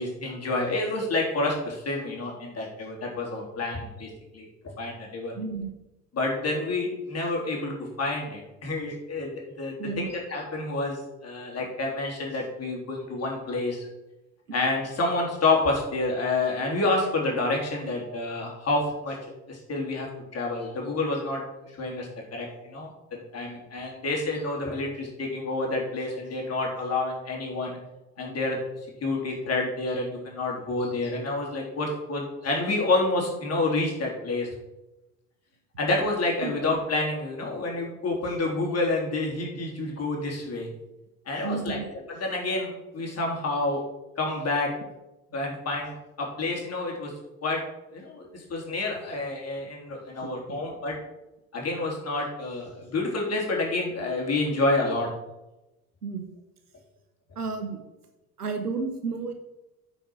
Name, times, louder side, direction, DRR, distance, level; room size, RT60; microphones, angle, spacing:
voice 1, 0.0-5.3 6.1-13.9 14.5-19.2 19.5-27.8 28.2-28.6 29.0-34.5 35.8-40.7 41.3-41.8 42.1-43.8 44.2-44.7 45.3-47.1 47.4-47.6 47.9-51.0 51.5-55.1, left 2 dB, 35° left, -1 dB, 3.6 m, -29 dB
voice 2, 5.4-5.7 9.8-10.1 36.4-36.5 41.4-41.9 50.2-50.3 56.0-56.3 57.3-57.8 58.4-59.3, right 5 dB, 85° right, 6 dB, 1.2 m, -32 dB
9.2 x 5.7 x 6.2 m, 0.98 s
figure-of-eight pair, 60°, 45 cm